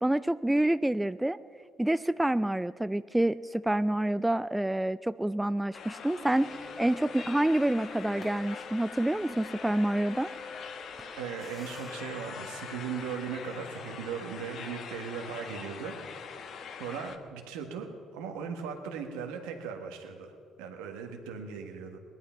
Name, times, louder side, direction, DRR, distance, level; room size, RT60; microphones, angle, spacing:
voice 1, 0.0-1.4 1.8-10.3, right 1 dB, 10° right, 15 dB, 0.3 m, -28 dB
sound 1, 5.7-17.2, left 6 dB, 60° left, 1.1 m, -43 dB
sound 2, 6.3-13.6, left 3 dB, 15° left, 1.6 m, -46 dB
voice 2, 11.2-16.0 16.8-17.9 18.1-22.0, right 7 dB, 80° right, 4 dB, 1.5 m, -38 dB
18.5 x 11.5 x 5.7 m, 2.3 s
hypercardioid pair, 55°, 0 cm